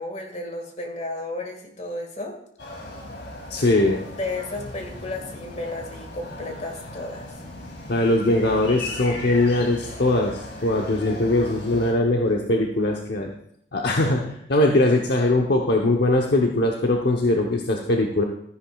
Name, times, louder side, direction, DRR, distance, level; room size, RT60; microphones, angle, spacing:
voice 1, 0.0-2.4 4.2-7.4, left 2 dB, 40° left, 3 dB, 1.9 m, -33 dB
sound 1, 2.6-11.9, left 2 dB, 90° left, 2.7 m, -37 dB
voice 2, 3.5-4.0 7.9-13.3 13.7-18.2, left 2 dB, 65° left, 1 dB, 0.9 m, -21 dB
13.5 x 10.5 x 2.4 m, 0.70 s
head